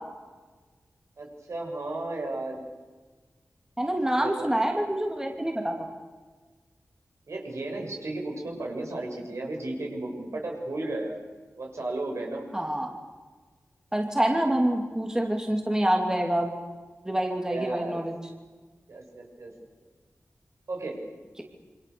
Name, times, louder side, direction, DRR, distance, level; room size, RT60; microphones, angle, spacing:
voice 1, 1.2-2.6 4.1-4.5 7.3-11.2 11.6-12.5 17.5-18.0 18.9-19.5 20.7-21.0 21.4-21.5, right 2 dB, 70° right, 1 dB, 6.9 m, -34 dB
voice 2, 3.8-5.9 12.5-12.9 13.9-16.5 17.0-18.1, right 1 dB, 10° right, 2 dB, 3.0 m, -26 dB
28.0 x 25.0 x 7.1 m, 1.4 s
wide cardioid pair, 90°, 5 cm